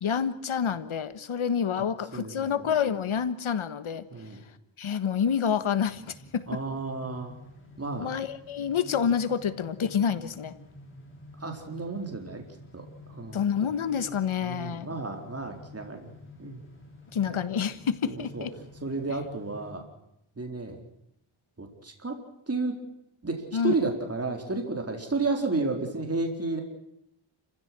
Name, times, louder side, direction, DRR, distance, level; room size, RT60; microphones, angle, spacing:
voice 1, 0.0-4.0 4.8-6.6 8.0-10.5 13.3-14.9 17.1-18.5 23.5-23.7, left 7 dB, 75° left, 13 dB, 1.5 m, -28 dB
voice 2, 2.1-2.6 4.1-4.4 6.5-7.3 7.8-8.1 11.4-12.4 12.7-13.4 14.4-16.1 16.4-16.6 17.3-17.4 18.1-18.5 18.8-19.9 20.4-20.8 21.6-22.2 22.5-22.8 23.2-26.6, right 3 dB, 30° right, 3 dB, 4.2 m, -32 dB
sound 1, 5.8-19.7, left 1 dB, 25° left, 6.9 m, -50 dB
29.5 x 16.0 x 6.1 m, 0.79 s
wide cardioid pair, 85°, 49 cm